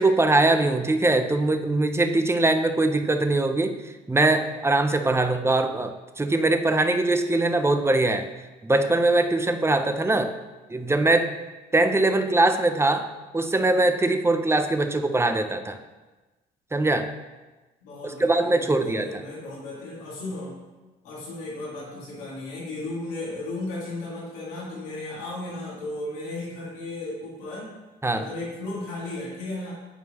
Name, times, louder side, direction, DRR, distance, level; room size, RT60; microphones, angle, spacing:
voice 1, 0.0-3.8 4.1-8.3 8.6-10.4 10.7-11.4 11.7-15.8 16.7-17.1 18.0-19.2 28.0-28.3, right 2 dB, 10° right, 8 dB, 0.6 m, -22 dB
voice 2, 17.8-20.6 21.0-27.7 28.1-29.7, left 2 dB, 90° left, -5 dB, 2.0 m, -35 dB
11.0 x 4.4 x 2.9 m, 1.2 s
supercardioid pair, 65°, 21 cm